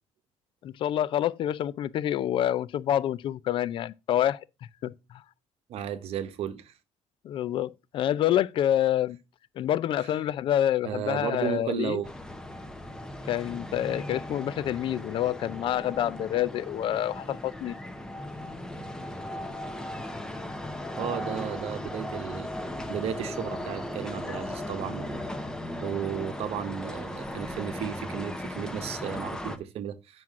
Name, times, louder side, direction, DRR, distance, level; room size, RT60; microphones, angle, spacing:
voice 1, 0.6-4.4 4.8-4.9 7.2-9.2 9.6-12.0 13.3-17.7, left 11 dB, 45° left, 0.4 m, -27 dB
voice 2, 5.7-6.7 10.0-10.1 10.8-12.1 21.0-22.5 22.9-25.2 25.8-30.2, right 9 dB, 55° right, 0.9 m, -34 dB
sound 1, 12.0-29.6, left 1 dB, 5° left, 0.7 m, -37 dB
9.0 x 6.1 x 3.6 m
cardioid pair, 180°, 12 cm